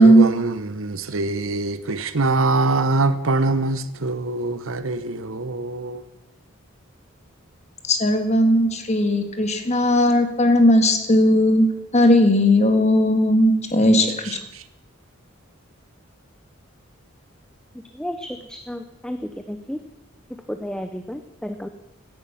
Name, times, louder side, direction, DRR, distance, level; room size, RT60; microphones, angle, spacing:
voice 1, 0.0-6.0 14.2-14.6, right 2 dB, 70° right, 0.9 m, -24 dB
voice 2, 7.9-11.7 11.9-14.4, equal, 30° left, 1.7 m, -17 dB
voice 3, 17.9-19.8 20.5-21.7, equal, 5° left, 0.6 m, -32 dB
16.5 x 11.0 x 5.8 m
head